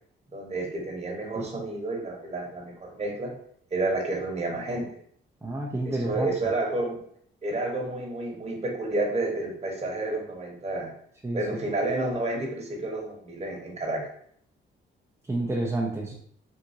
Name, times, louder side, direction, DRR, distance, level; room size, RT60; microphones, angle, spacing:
voice 1, 0.3-3.3 3.7-4.9 5.8-7.0 7.4-10.9 11.3-14.0, right 2 dB, 30° right, -1 dB, 1.2 m, -30 dB
voice 2, 5.4-6.3 11.2-11.4 15.3-16.1, right 2 dB, 10° right, -3 dB, 0.6 m, -29 dB
3.6 x 2.6 x 2.8 m, 0.65 s
cardioid pair, 90°, 20 cm